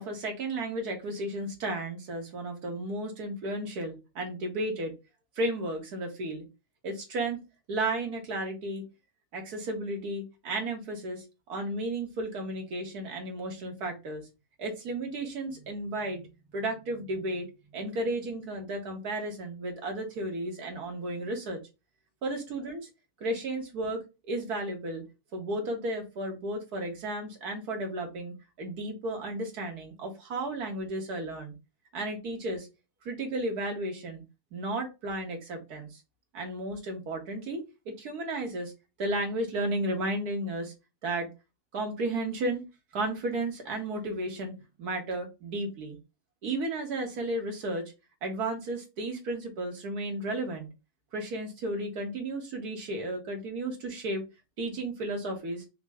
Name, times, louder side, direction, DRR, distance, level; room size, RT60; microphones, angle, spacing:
voice 1, 0.0-4.9 5.4-6.4 6.8-7.4 7.7-8.9 9.3-14.2 14.6-17.5 17.7-21.6 22.2-22.8 23.2-25.0 25.3-31.5 31.9-32.7 33.1-34.2 34.5-36.0 36.3-38.7 39.0-40.7 41.0-41.3 41.7-42.6 42.9-46.0 46.4-47.9 48.2-50.7 51.1-54.2 54.6-55.6, right 1 dB, 80° right, 2 dB, 1.8 m, -33 dB
5.5 x 2.1 x 3.5 m, 0.26 s
omnidirectional pair, 1.6 m